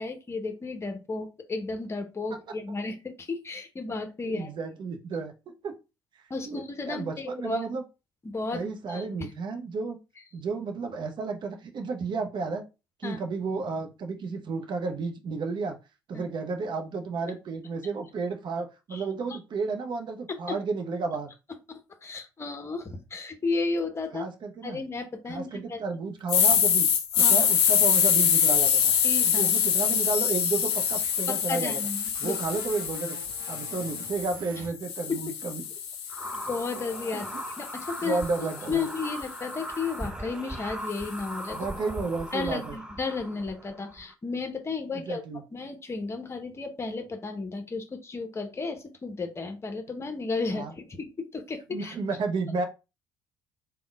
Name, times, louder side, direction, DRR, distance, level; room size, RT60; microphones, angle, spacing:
voice 1, 0.0-4.5 6.3-7.7 8.2-9.3 13.0-13.2 16.1-16.2 18.9-19.0 19.3-19.4 21.7-24.2 24.6-25.8 27.1-27.4 29.0-29.5 31.3-32.3 35.1-35.2 36.5-37.3 37.6-38.2 38.7-41.6 42.3-45.2 45.5-52.0, left 4 dB, 25° left, 7 dB, 0.8 m, -33 dB
voice 2, 4.2-5.8 6.5-7.8 8.5-10.0 10.3-12.6 13.0-15.8 16.1-21.3 24.1-24.8 25.3-26.9 27.2-28.9 29.3-31.8 32.2-33.2 33.5-35.6 37.1-37.4 38.0-38.9 41.5-42.8 44.9-45.4 50.5-50.7 51.7-52.6, right 4 dB, 40° right, 5 dB, 0.7 m, -32 dB
sound 1, 26.3-34.4 34.8-39.0, left 8 dB, 60° left, 0.6 m, -25 dB
sound 2, 27.2-34.7, right 1 dB, 85° right, 0.7 m, -45 dB
sound 3, 36.1-44.1, equal, 5° right, 0.5 m, -39 dB
3.5 x 2.2 x 3.4 m, 0.27 s
figure-of-eight pair, 50°, 11 cm